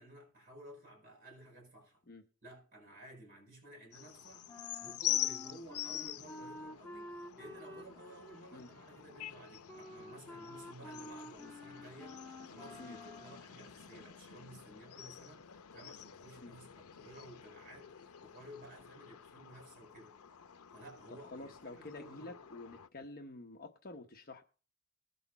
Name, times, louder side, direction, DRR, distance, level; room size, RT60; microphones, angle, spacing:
voice 1, 0.0-2.0 2.4-4.5 4.8-12.2 12.5-15.5 15.7-20.2 20.7-22.4, right 1 dB, 40° right, 6.9 m, -54 dB
sound 1, 3.9-22.9, left 12 dB, 90° left, 0.6 m, -45 dB
Wind instrument woodwind instrument, 4.5-13.5, left 1 dB, 10° left, 1.3 m, -51 dB
voice 2, 21.1-24.4, left 2 dB, 45° left, 1.0 m, -49 dB
20.0 x 6.7 x 4.1 m
head